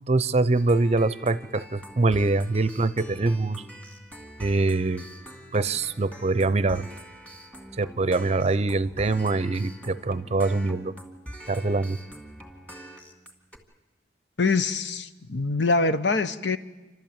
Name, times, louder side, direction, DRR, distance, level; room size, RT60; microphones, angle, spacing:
voice 1, 0.1-3.6 4.4-5.1 5.5-6.9 7.8-10.9 11.5-12.0, right 3 dB, 40° right, 17 dB, 0.6 m, -24 dB
sound 1, 0.5-13.6, equal, 10° left, 2.4 m, -44 dB
voice 2, 14.4-16.6, left 3 dB, 80° left, 12 dB, 1.0 m, -24 dB
29.0 x 13.0 x 8.9 m, 1.2 s
head